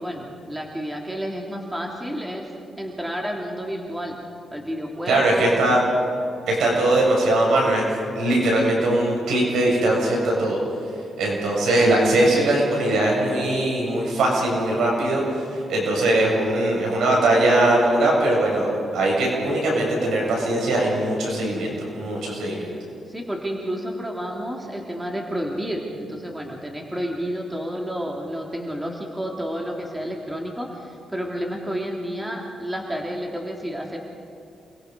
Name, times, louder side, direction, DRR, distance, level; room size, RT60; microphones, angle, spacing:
voice 1, 0.0-2.5 2.8-4.1 4.5-5.6 23.1-34.0, equal, 10° right, 0 dB, 3.2 m, -30 dB
voice 2, 5.1-5.8 6.5-7.9 8.2-10.6 11.2-15.4 15.7-22.6, right 1 dB, 80° right, -2 dB, 7.2 m, -20 dB
29.0 x 21.5 x 5.4 m, 2.6 s
cardioid pair, 75°, 0 cm